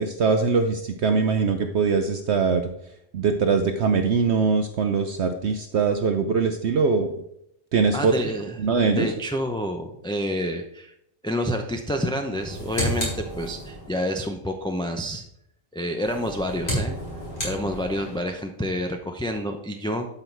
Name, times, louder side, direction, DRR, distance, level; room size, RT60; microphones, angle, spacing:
voice 1, 0.0-2.7 3.1-7.1 7.7-9.1, right 5 dB, 60° right, 6 dB, 0.9 m, -22 dB
voice 2, 7.9-8.6 8.9-10.9 11.2-15.3 15.7-17.0 17.4-20.1, equal, 5° left, 4 dB, 0.5 m, -28 dB
sound 1, 12.3-14.0 15.9-18.3, equal, 40° left, 4.3 m, -31 dB
12.0 x 5.6 x 4.6 m, 0.75 s
omnidirectional pair, 1.3 m